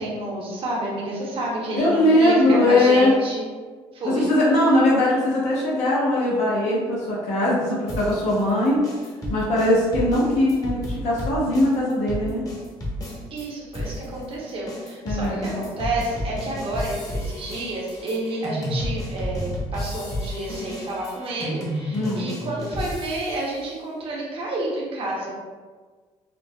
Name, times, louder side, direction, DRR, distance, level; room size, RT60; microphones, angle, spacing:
voice 1, 0.0-3.4 3.9-4.3 13.3-25.3, right 1 dB, 50° right, -4 dB, 0.8 m, -30 dB
voice 2, 1.8-3.1 4.0-8.8 9.3-12.4 15.0-15.6 21.9-22.2, left 1 dB, 75° left, -6 dB, 1.1 m, -20 dB
sound 1, 7.9-13.5 13.7-23.5, equal, 30° left, 0.9 m, -32 dB
3.8 x 2.1 x 2.2 m, 1.5 s
supercardioid pair, 80°, 12 cm